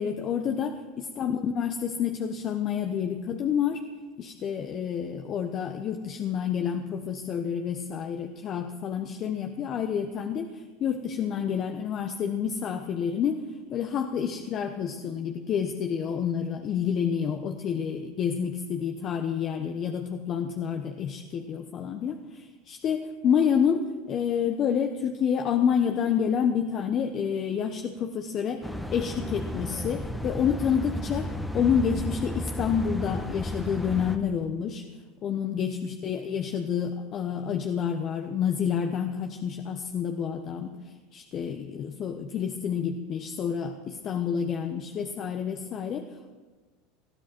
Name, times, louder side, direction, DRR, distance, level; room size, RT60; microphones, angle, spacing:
voice 1, 0.0-3.8 4.2-13.4 13.7-34.8 35.2-46.1, left 7 dB, 45° left, 6 dB, 1.1 m, -29 dB
sound 1, 28.6-34.2, equal, 5° left, 1.3 m, -33 dB
20.0 x 13.5 x 4.5 m, 1.3 s
hypercardioid pair, 95°, 0 cm